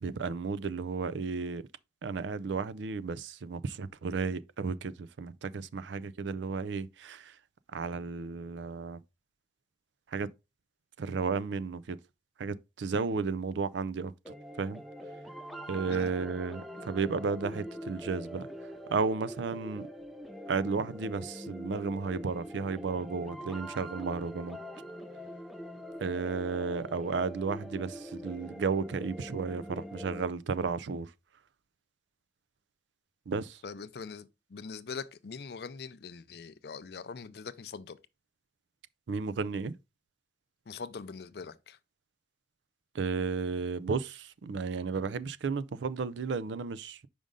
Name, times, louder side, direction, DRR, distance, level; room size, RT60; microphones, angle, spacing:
voice 1, 0.0-1.6 2.0-7.4 7.7-9.0 10.1-10.3 11.0-12.0 12.4-14.8 15.7-18.5 18.9-19.9 20.5-24.6 26.0-31.1 33.3-33.6 39.1-39.7 42.9-47.1, right 4 dB, 75° right, 0.4 m, -33 dB
sound 1, 14.2-30.2, equal, ahead, 0.4 m, -43 dB
voice 2, 33.6-38.0 40.7-41.8, left 5 dB, 55° left, 0.4 m, -42 dB
5.2 x 5.1 x 3.6 m
head